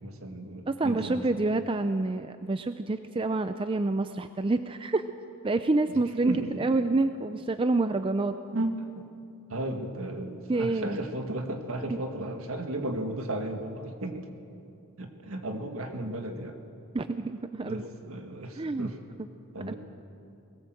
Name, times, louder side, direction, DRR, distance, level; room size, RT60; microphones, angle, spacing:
voice 1, 0.0-1.4 6.2-6.8 8.5-9.1 9.5-14.3 15.0-16.6 17.6-19.0 19.5-19.8, right 1 dB, 65° right, 4 dB, 1.9 m, -35 dB
voice 2, 0.7-5.1 5.4-8.3 10.5-11.0 16.9-17.8 18.6-18.9 19.7-19.8, right 2 dB, 25° right, 9 dB, 0.4 m, -27 dB
20.0 x 18.0 x 7.7 m, 2.7 s
head